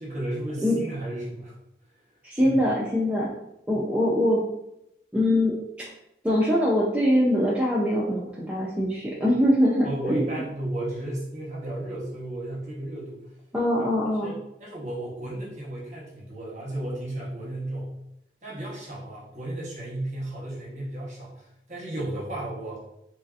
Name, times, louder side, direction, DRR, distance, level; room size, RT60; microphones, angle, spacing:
voice 1, 0.0-1.5 2.4-2.6 3.7-3.8 9.2-9.3 9.8-13.2 14.2-17.9 18.4-22.8, right 1 dB, 40° right, -4 dB, 1.0 m, -34 dB
voice 2, 2.2-3.3 3.7-4.4 5.1-5.6 6.2-10.2 13.5-14.3, equal, 5° right, -6 dB, 0.3 m, -23 dB
3.1 x 2.7 x 2.4 m, 0.82 s
head